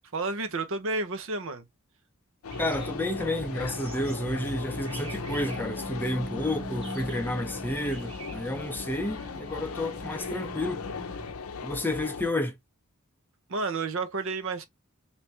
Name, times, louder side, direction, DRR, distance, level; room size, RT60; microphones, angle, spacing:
voice 1, 0.1-1.6 13.5-14.6, right 3 dB, 65° right, 0.8 m, -31 dB
sound 1, 2.4-12.3, left 5 dB, 80° left, 0.6 m, -38 dB
sound 2, 2.5-11.3, right 2 dB, 25° right, 1.0 m, -40 dB
voice 2, 2.6-10.8 11.6-12.5, left 1 dB, 10° left, 0.6 m, -31 dB
3.3 x 2.7 x 3.0 m
head